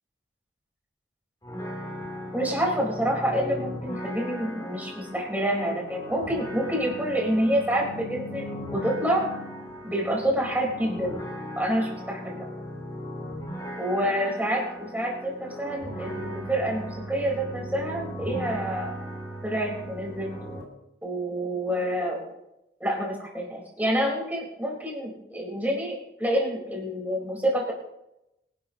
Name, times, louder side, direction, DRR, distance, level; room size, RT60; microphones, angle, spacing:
sound 1, 1.4-20.6, equal, 20° left, 3.2 m, -37 dB
voice 1, 2.3-9.3 9.8-11.2 11.6-12.5 13.8-18.9 19.4-20.3 21.0-22.2 22.8-27.7, equal, 10° right, -3 dB, 4.2 m, -28 dB
24.5 x 12.0 x 2.9 m, 0.87 s
head